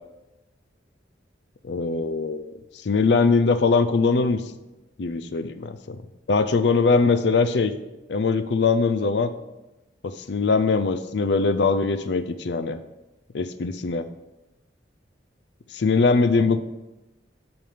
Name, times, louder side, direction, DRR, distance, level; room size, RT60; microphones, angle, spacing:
voice 1, 1.6-2.5 2.8-4.4 5.0-6.0 6.3-7.7 8.1-9.3 10.0-12.8 13.3-14.1 15.7-16.6, left 4 dB, 70° left, 11 dB, 0.5 m, -21 dB
8.8 x 5.4 x 5.0 m, 1.0 s
head